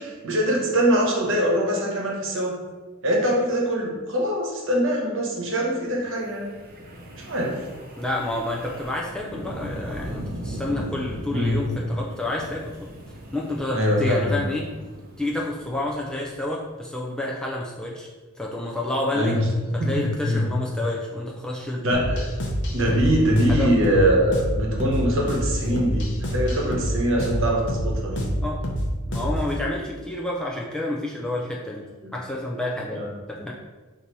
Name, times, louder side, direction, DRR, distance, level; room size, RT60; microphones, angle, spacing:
voice 1, 0.0-2.6 3.0-6.5 7.2-7.7 11.3-11.6 13.7-14.4 19.1-19.5 19.8-20.5 21.8-22.3 22.7-28.2 32.0-32.1 32.9-33.1, equal, 60° right, -2 dB, 1.1 m, -23 dB
Wind, 6.1-16.4, right 1 dB, 45° right, 0.6 m, -38 dB
voice 2, 8.0-12.8 13.3-14.7 15.2-18.1 18.4-19.4 19.7-21.8 22.9-23.0 23.5-23.8 28.4-28.6 29.1-31.8 32.1-33.5, left 1 dB, 5° left, -3 dB, 0.3 m, -29 dB
sound 1, 21.9-29.5, equal, 55° left, 0.7 m, -27 dB
4.0 x 2.7 x 4.5 m, 1.3 s
head